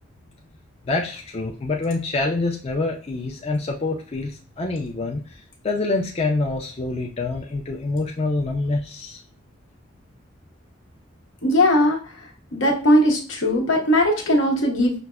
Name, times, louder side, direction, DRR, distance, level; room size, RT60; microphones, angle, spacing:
voice 1, 0.9-9.2, left 3 dB, 30° left, 0 dB, 0.4 m, -26 dB
voice 2, 11.4-12.0 12.5-15.0, left 1 dB, 80° left, -1 dB, 1.0 m, -19 dB
5.8 x 2.0 x 2.2 m, 0.39 s
head